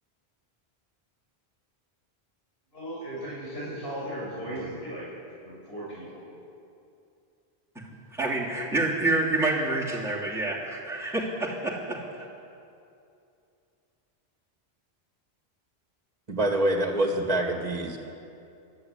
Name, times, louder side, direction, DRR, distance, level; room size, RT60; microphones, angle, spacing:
voice 1, 2.7-5.1 5.4-6.2, right 1 dB, 65° left, -7 dB, 7.4 m, -36 dB
voice 2, 8.1-12.0, right 2 dB, ahead, -6 dB, 3.0 m, -27 dB
voice 3, 16.3-18.0, right 1 dB, 35° right, 2 dB, 2.1 m, -25 dB
23.0 x 12.5 x 9.9 m, 2.6 s
omnidirectional pair, 1.1 m